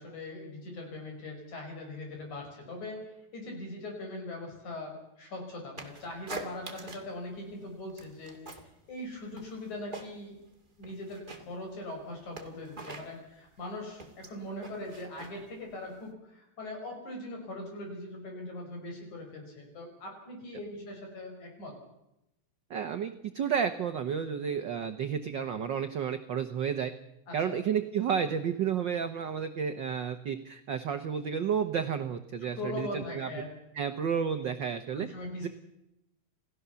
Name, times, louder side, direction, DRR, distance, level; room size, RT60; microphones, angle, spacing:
voice 1, 0.0-3.0 3.3-8.4 8.9-10.4 10.8-21.7 27.3-27.6 32.4-33.5 34.9-35.5, left 1 dB, 75° left, 2 dB, 7.0 m, -41 dB
sound 1, 5.8-7.2 7.5-8.7 9.0-10.4 10.7-16.1, right 3 dB, 20° right, 2.1 m, -45 dB
voice 2, 22.7-26.9 27.3-33.3 33.7-35.1, right 7 dB, 65° right, 7 dB, 1.1 m, -31 dB
28.5 x 16.0 x 7.0 m, 0.87 s
omnidirectional pair, 3.4 m